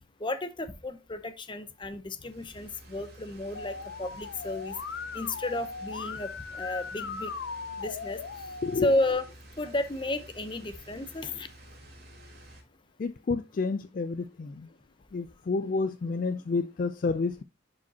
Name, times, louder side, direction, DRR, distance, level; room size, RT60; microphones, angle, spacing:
voice 1, 0.2-4.7 5.1-7.3 7.8-8.2 8.8-9.3 9.6-11.5, left 2 dB, 25° left, 0.8 m, -32 dB
sound 1, 2.2-12.6, right 1 dB, 50° right, 2.7 m, -51 dB
Musical instrument, 3.5-9.1, left 5 dB, 80° left, 0.7 m, -39 dB
voice 2, 13.0-14.7 15.1-17.4, left 4 dB, 45° left, 0.3 m, -30 dB
10.5 x 4.9 x 2.8 m
head